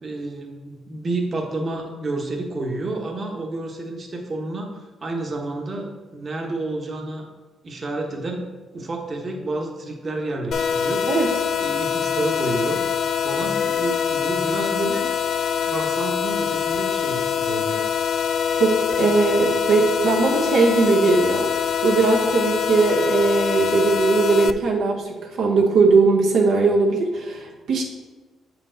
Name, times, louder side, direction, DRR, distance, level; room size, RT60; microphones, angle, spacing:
voice 1, 0.0-7.3 7.6-8.5 8.7-11.1 11.6-12.8 13.2-15.1 15.6-17.9, right 2 dB, 40° right, 1 dB, 1.1 m, -29 dB
sound 1, 10.5-24.5, left 7 dB, 65° left, 0.3 m, -24 dB
voice 2, 18.6-27.8, right 4 dB, 70° right, -1 dB, 0.9 m, -19 dB
7.4 x 4.5 x 3.9 m, 1.2 s
cardioid pair, 90°, 0 cm